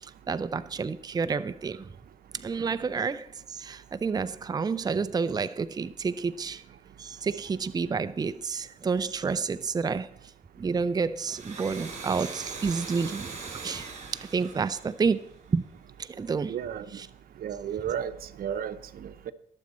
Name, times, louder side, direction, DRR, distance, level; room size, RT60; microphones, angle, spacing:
voice 1, 0.0-1.9 2.3-6.6 7.0-10.1 10.6-13.4 13.6-15.7 16.0-16.6 16.9-17.1, right 5 dB, 25° right, 0.5 m, -30 dB
Domestic sounds home sounds, 11.2-15.7, right 4 dB, 50° right, 3.2 m, -41 dB
voice 2, 16.5-16.8 17.4-18.1 18.4-19.3, right 9 dB, 70° right, 0.9 m, -33 dB
21.5 x 7.3 x 4.3 m
cardioid pair, 90°, 16 cm